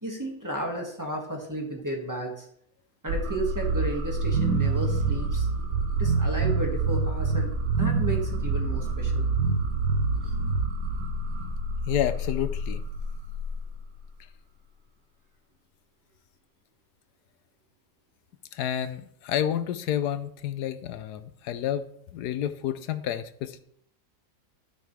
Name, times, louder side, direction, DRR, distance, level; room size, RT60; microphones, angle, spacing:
voice 1, 0.0-2.5 3.0-5.5 6.0-7.5 7.8-9.3 10.2-10.3, right 1 dB, 10° right, 0 dB, 1.6 m, -33 dB
sound 1, 3.1-14.0, right 3 dB, 85° right, 1.5 m, -27 dB
voice 2, 11.9-12.8 18.5-21.9 22.1-23.6, left 10 dB, 75° left, 11 dB, 1.2 m, -30 dB
13.0 x 5.9 x 3.3 m, 0.67 s
omnidirectional pair, 1.8 m